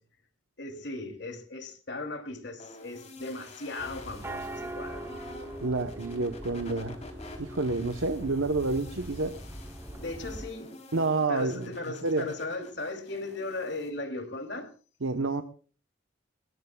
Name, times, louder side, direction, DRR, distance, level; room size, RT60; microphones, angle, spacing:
voice 1, 0.6-5.1 10.0-10.8 11.3-14.7, left 2 dB, 60° left, 2.9 m, -37 dB
sound 1, 2.6-13.9, left 2 dB, 35° left, 3.5 m, -49 dB
sound 2, 3.8-10.5, right 1 dB, 10° right, 0.8 m, -41 dB
voice 2, 5.6-7.0 7.4-9.3 10.9-11.7 12.0-12.3 15.0-15.4, right 3 dB, 90° right, 1.0 m, -29 dB
22.5 x 20.5 x 2.3 m
head